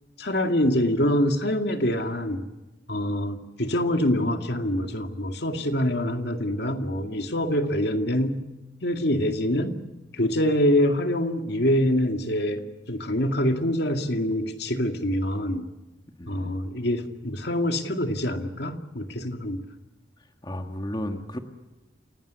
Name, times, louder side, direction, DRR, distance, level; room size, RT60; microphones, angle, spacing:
voice 1, 0.2-2.4 2.9-8.4 8.8-9.8 10.1-15.7 16.3-19.6, left 1 dB, 60° left, 6 dB, 2.2 m, -25 dB
voice 2, 16.2-16.6 20.4-21.4, left 1 dB, 25° left, 5 dB, 1.7 m, -33 dB
28.5 x 18.5 x 8.2 m, 1.1 s
head